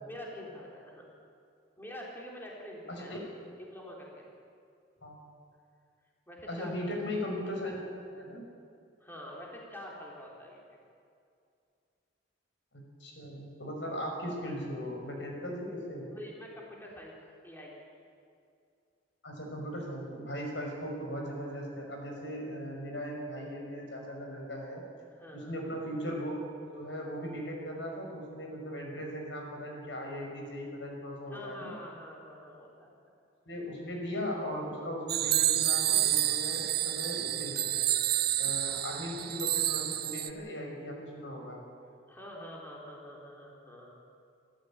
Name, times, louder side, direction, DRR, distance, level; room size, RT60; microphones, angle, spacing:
voice 1, 0.0-1.1 1.8-3.3 3.6-4.3 6.3-6.9 9.0-10.6 16.1-17.1 17.4-17.8 25.1-25.6 31.3-32.9 42.1-43.9, left 1 dB, 10° left, -3 dB, 3.8 m, -46 dB
voice 2, 2.9-3.2 5.0-5.2 6.5-7.8 8.1-8.5 12.7-16.1 19.2-24.8 25.5-26.4 26.7-31.8 33.5-37.8 38.4-41.6, equal, 85° left, 0 dB, 5.9 m, -38 dB
sound 1, 35.1-40.3, right 12 dB, 60° right, 0.9 m, -29 dB
26.5 x 14.0 x 8.8 m, 2.4 s
head